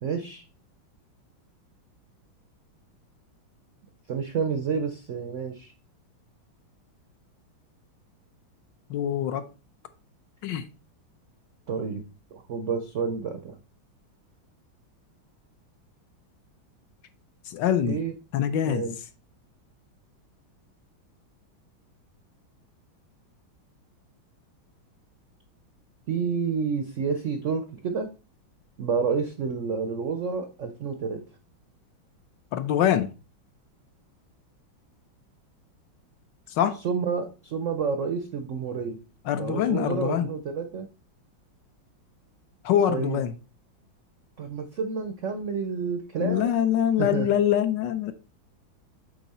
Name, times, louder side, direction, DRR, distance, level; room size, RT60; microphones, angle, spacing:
voice 1, 0.0-0.4 4.1-5.7 11.7-12.0 12.3-13.6 17.8-18.1 18.7-19.0 26.1-28.1 28.8-31.2 36.8-39.0 39.4-40.9 42.9-43.2 44.4-46.5 47.0-47.3, right 5 dB, 80° right, 0.6 m, -29 dB
voice 2, 8.9-9.5 10.4-10.7 17.5-18.0 18.3-18.9 32.5-33.1 36.5-36.8 39.3-40.3 42.6-43.3 46.2-48.1, left 10 dB, 70° left, 1.2 m, -24 dB
8.3 x 3.8 x 4.1 m
omnidirectional pair, 2.2 m